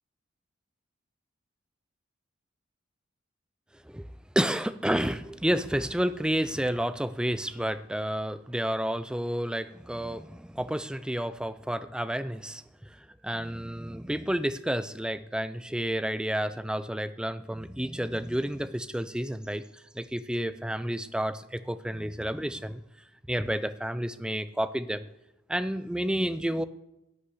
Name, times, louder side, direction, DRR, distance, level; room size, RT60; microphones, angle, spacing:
voice 1, 4.4-22.8 23.3-25.1 25.5-26.7, equal, 5° right, 13 dB, 0.4 m, -30 dB
11.0 x 6.8 x 7.8 m, 0.88 s
head